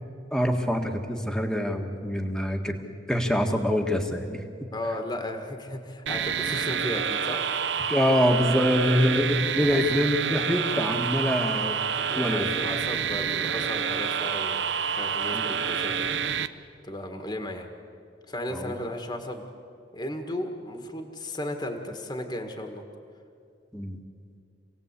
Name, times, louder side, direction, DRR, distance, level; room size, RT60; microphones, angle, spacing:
voice 1, 0.3-2.8 3.1-4.4 7.9-11.8 12.2-12.5 15.3-15.4 18.5-18.7 23.7-24.0, equal, 5° left, 4 dB, 1.7 m, -25 dB
voice 2, 4.7-7.6 9.6-10.0 12.1-16.1 16.8-17.7 18.3-19.4 19.9-22.8, left 1 dB, 20° left, 4 dB, 1.8 m, -35 dB
sound 1, 6.1-16.5, right 7 dB, 65° right, 0.7 m, -28 dB
27.0 x 18.0 x 8.3 m, 2.3 s
head